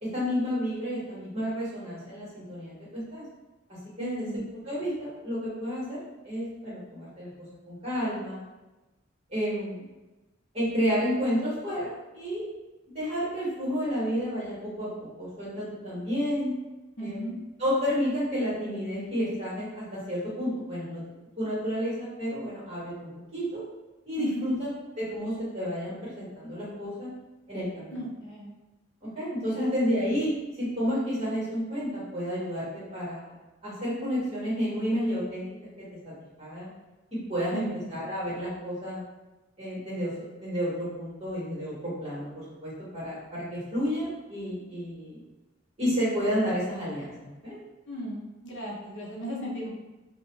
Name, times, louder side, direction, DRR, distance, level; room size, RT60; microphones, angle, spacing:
voice 1, 0.0-3.2 3.7-4.2 4.6-7.3 7.7-8.4 9.3-9.8 10.5-12.4 12.9-16.5 17.0-17.3 17.6-21.0 21.4-23.6 24.0-24.7 25.0-27.1 27.5-28.0 29.0-33.3 33.6-35.4 36.4-36.7 37.3-37.6 37.9-39.0 39.6-40.1 40.4-45.2 45.8-47.6, equal, 30° right, -9 dB, 1.3 m, -31 dB
voice 2, 4.0-4.4 17.0-17.4 24.2-24.5 27.9-28.5 29.5-29.7 37.5-37.8 47.9-49.7, right 1 dB, 65° left, -3 dB, 0.6 m, -35 dB
2.5 x 2.2 x 3.0 m, 1.1 s
head